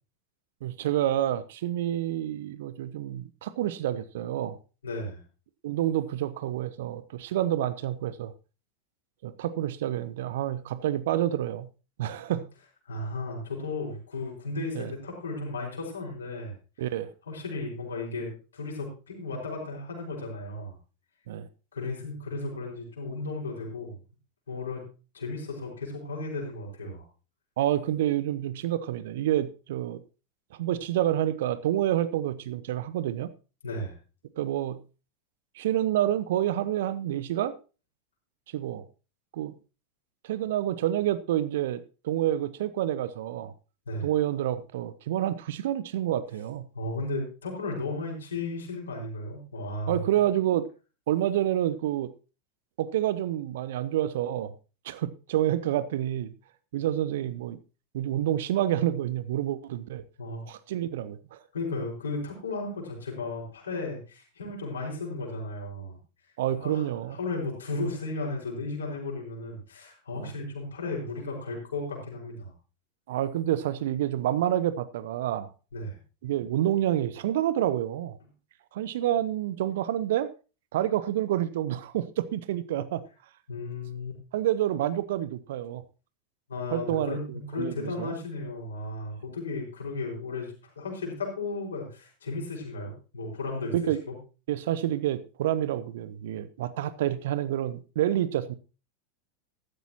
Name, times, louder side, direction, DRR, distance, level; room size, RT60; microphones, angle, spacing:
voice 1, 0.6-4.6 5.6-8.3 9.2-11.7 12.0-12.5 14.7-14.9 16.8-17.1 21.3-21.5 27.6-30.0 30.6-33.3 34.3-34.8 35.6-37.5 38.5-38.8 39.3-39.5 40.2-43.5 44.0-46.7 49.9-50.7 51.1-52.1 52.8-54.5 54.8-56.3 56.7-57.6 57.9-60.0 60.5-61.4 66.4-67.2 70.1-70.3 73.1-75.5 76.2-78.2 78.7-80.3 80.7-83.0 84.3-85.8 86.7-88.1 93.7-94.0 94.5-98.5, right 12 dB, 60° right, 0.8 m, -28 dB
voice 2, 4.8-5.2 12.9-16.5 17.3-20.8 21.7-24.0 24.5-24.8 25.1-27.0 33.6-33.9 43.9-44.1 46.7-50.0 60.2-60.4 61.5-66.0 66.5-72.5 75.7-76.0 83.5-84.2 86.5-93.7 94.1-94.2, left 2 dB, 70° left, 5.2 m, -35 dB
14.5 x 12.5 x 3.0 m
figure-of-eight pair, 85°, 0 cm